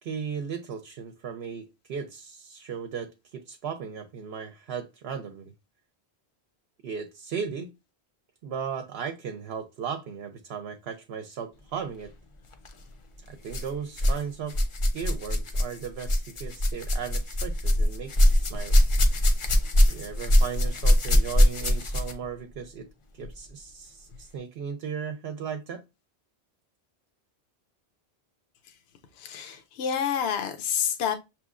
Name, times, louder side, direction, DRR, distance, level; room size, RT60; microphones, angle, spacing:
voice 1, 0.0-5.5 6.8-7.7 8.4-12.1 13.3-14.6 14.9-18.8 19.9-22.9 23.1-25.8, right 7 dB, 70° right, 0.9 m, -36 dB
sound 1, 12.5-12.7 13.5-14.2 14.5-22.3 23.2-23.3 24.1-24.2, left 1 dB, 40° left, 0.5 m, -22 dB
voice 2, 29.2-31.2, left 8 dB, 70° left, 0.8 m, -28 dB
6.2 x 2.9 x 2.4 m
omnidirectional pair, 1.1 m